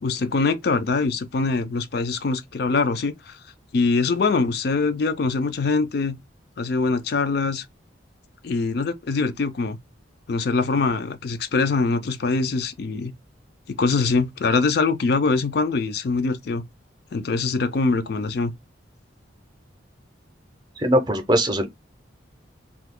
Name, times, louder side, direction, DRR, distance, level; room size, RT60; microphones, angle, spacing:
voice 1, 0.0-3.4 3.7-6.2 6.6-7.7 8.4-9.8 10.3-13.1 13.7-16.6 17.1-18.5, left 4 dB, 55° left, 0.4 m, -23 dB
voice 2, 20.8-21.7, equal, 20° right, 0.6 m, -20 dB
2.7 x 2.3 x 3.5 m
head